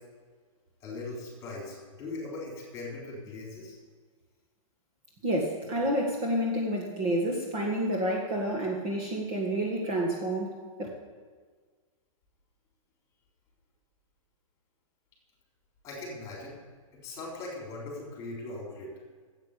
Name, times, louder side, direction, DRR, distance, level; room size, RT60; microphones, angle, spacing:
voice 1, 0.8-3.8 15.8-16.6 17.0-18.9, left 2 dB, 20° left, -2 dB, 3.7 m, -40 dB
voice 2, 5.2-10.9, right 1 dB, 25° right, -1 dB, 1.7 m, -29 dB
9.5 x 8.2 x 8.3 m, 1.5 s
hypercardioid pair, 160°, 18 cm